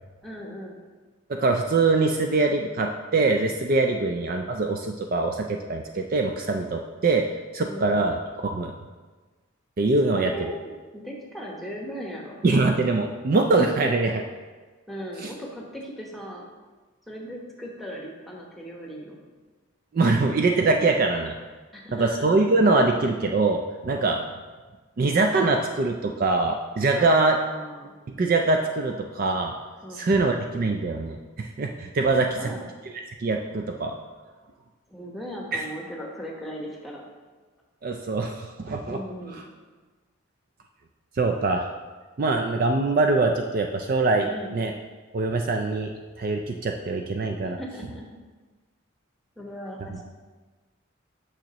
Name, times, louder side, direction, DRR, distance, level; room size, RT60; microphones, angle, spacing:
voice 1, 0.2-0.8 3.9-4.1 7.6-7.9 9.8-12.4 14.9-16.5 17.1-19.2 21.7-22.3 26.9-27.9 29.8-30.3 32.3-32.7 34.9-37.0 38.9-39.4 44.2-44.6 47.4-48.1 49.4-50.0, equal, ahead, -3 dB, 1.0 m, -38 dB
voice 2, 1.3-7.3 7.5-8.7 9.8-10.3 12.4-14.2 15.2-15.3 19.9-21.3 21.9-24.2 25.0-27.4 28.1-29.5 29.9-32.5 33.2-34.0 35.5-35.6 37.8-39.0 39.3-39.4 41.2-41.7 42.2-44.3 44.5-44.7 45.1-45.9 46.2-47.6, right 3 dB, 40° right, 3 dB, 0.3 m, -23 dB
8.8 x 6.2 x 2.9 m, 1.3 s
head